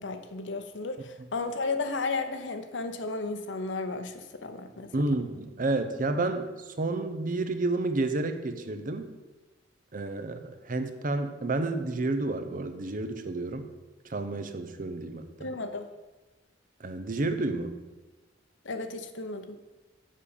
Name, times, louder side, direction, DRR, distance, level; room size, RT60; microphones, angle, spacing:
voice 1, 0.0-4.9 15.4-15.9 18.6-19.6, left 3 dB, 70° left, 8 dB, 0.8 m, -34 dB
voice 2, 4.9-9.1 9.9-13.7 14.0-15.5 16.8-17.8, right 2 dB, 45° right, 9 dB, 0.7 m, -30 dB
7.4 x 5.3 x 6.7 m, 1.2 s
head